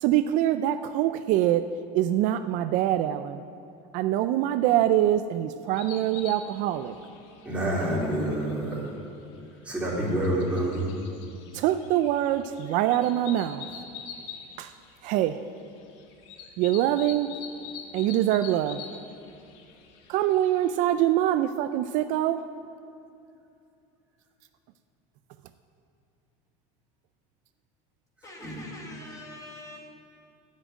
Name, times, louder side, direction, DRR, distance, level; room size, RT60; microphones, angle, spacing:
voice 1, 0.0-1.7 1.9-3.4 3.9-6.9 11.5-13.7 14.6-14.7 15.0-15.4 16.6-17.3 17.9-18.8 20.1-22.5, right 12 dB, 60° right, 11 dB, 0.4 m, -24 dB
sound 1, 5.7-20.7, left 7 dB, 80° left, 1.4 m, -46 dB
voice 2, 7.4-8.9 9.6-10.9 28.4-28.7, right 1 dB, 10° right, -6 dB, 3.3 m, -28 dB
voice 3, 28.2-29.8, left 2 dB, 20° left, -1 dB, 1.8 m, -44 dB
9.9 x 7.4 x 9.2 m, 2.5 s
cardioid pair, 140°, 15 cm